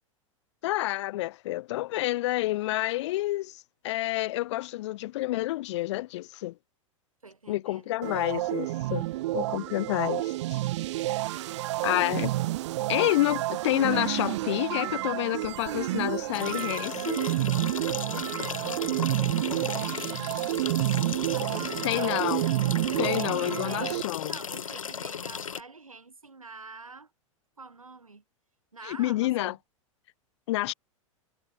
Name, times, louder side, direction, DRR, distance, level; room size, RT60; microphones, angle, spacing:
voice 1, 0.6-6.6 7.5-9.1 9.3-10.6 11.8-12.3 12.9-17.2 21.8-22.4 23.0-24.4 28.8-29.6 30.5-30.7, left 17 dB, 55° left, 0.9 m, -29 dB
voice 2, 7.2-8.2 11.3-12.1 18.1-19.4 21.3-22.3 22.9-27.1 27.6-28.2 28.7-29.6, right 4 dB, 90° right, 3.3 m, -47 dB
sound 1, 8.0-24.0, right 16 dB, 60° right, 1.5 m, -30 dB
sound 2, 16.3-25.6, left 7 dB, 75° left, 2.7 m, -36 dB
figure-of-eight pair, 95°, 17 cm